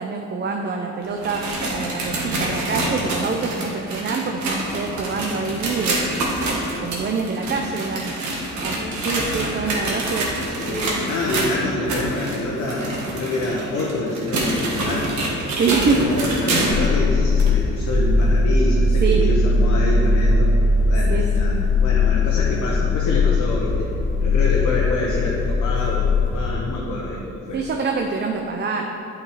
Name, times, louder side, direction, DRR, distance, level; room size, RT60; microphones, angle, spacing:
voice 1, 0.0-6.3 6.6-10.5 11.0-11.1 11.5-11.8 15.5-16.1 19.0-19.2 21.1-21.3 27.5-28.9, right 4 dB, 35° right, 2 dB, 0.6 m, -26 dB
sound 1, 1.0-16.9 17.4-17.5 18.2-18.3 19.2-19.3, right 1 dB, 70° right, 1.6 m, -26 dB
voice 2, 10.5-15.1 15.7-20.5 20.9-23.9 24.2-27.6, left 2 dB, 70° left, -4 dB, 1.1 m, -26 dB
sound 2, 16.6-26.5, left 3 dB, 40° left, 0.7 m, -19 dB
8.2 x 4.8 x 4.8 m, 2.9 s
cardioid pair, 90°, 30 cm